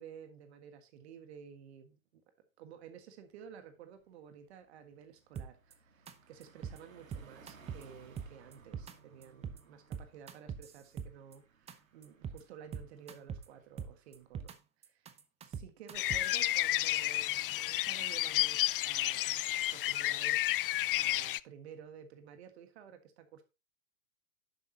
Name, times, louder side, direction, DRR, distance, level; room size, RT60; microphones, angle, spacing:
voice 1, 0.0-2.2 2.6-20.5 20.9-23.4, right 8 dB, 50° right, 1.6 m, -53 dB
Car passing by, 3.1-3.2 3.5-14.5, right 3 dB, 75° right, 1.8 m, -62 dB
sound 1, 5.4-5.7 6.1-6.2 6.4-6.8 7.1-7.8 8.2-8.9 9.2-9.6 9.9-11.4 11.7-11.8 12.0-12.4 12.7-13.5 13.8-14.6 14.8-16.4, right 7 dB, 15° right, 0.9 m, -42 dB
sound 2, 15.9-21.4, left 15 dB, 45° left, 0.4 m, -31 dB
11.0 x 7.6 x 2.9 m
figure-of-eight pair, 105°, 41 cm